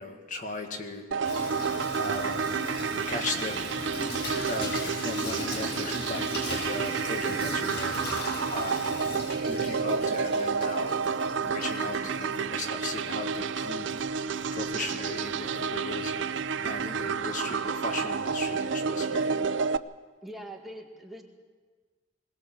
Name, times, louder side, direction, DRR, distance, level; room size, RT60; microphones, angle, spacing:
voice 1, 0.0-1.6 1.9-2.6 3.1-3.7 4.2-8.8 9.5-11.0 11.4-14.1 14.5-19.5, left 2 dB, 45° left, 4 dB, 1.9 m, -37 dB
sound 1, 1.1-19.8, right 5 dB, 80° right, 0.5 m, -30 dB
Water tap faucet / Sink (filling or washing), 1.2-18.7, left 1 dB, 65° left, 5.4 m, -39 dB
voice 2, 11.9-12.2 20.2-21.2, right 1 dB, ahead, 0 dB, 2.0 m, -43 dB
21.0 x 19.0 x 7.6 m, 1.5 s
head